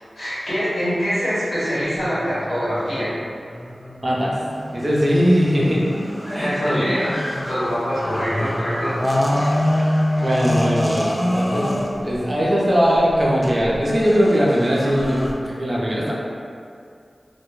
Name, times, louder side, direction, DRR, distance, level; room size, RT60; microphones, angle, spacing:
voice 1, 0.2-3.1 6.2-7.1 7.5-9.0, equal, 75° left, -11 dB, 1.0 m, -24 dB
sound 1, 1.8-15.3, left 1 dB, 25° left, 0.3 m, -26 dB
voice 2, 4.0-4.3 4.7-5.8 6.3-6.9 10.2-11.7 12.0-16.1, equal, 40° right, -5 dB, 0.5 m, -20 dB
2.1 x 2.1 x 3.0 m, 2.3 s
cardioid pair, 45°, 0 cm